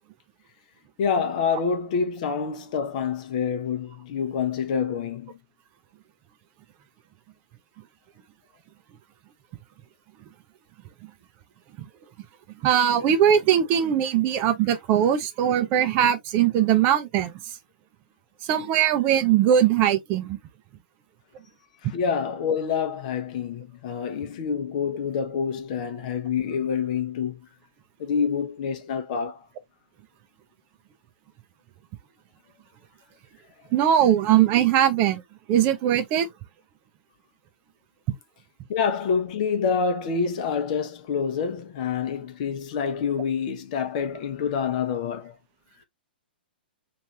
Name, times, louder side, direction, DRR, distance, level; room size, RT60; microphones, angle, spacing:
voice 1, 1.0-5.4 21.8-27.4 28.0-29.4 38.7-45.3, left 6 dB, 45° left, 0.8 m, -27 dB
voice 2, 12.6-17.3 18.4-20.4 33.7-35.2 35.5-36.3, right 10 dB, 35° right, 0.6 m, -20 dB
3.2 x 2.5 x 2.8 m
figure-of-eight pair, 115°, 6 cm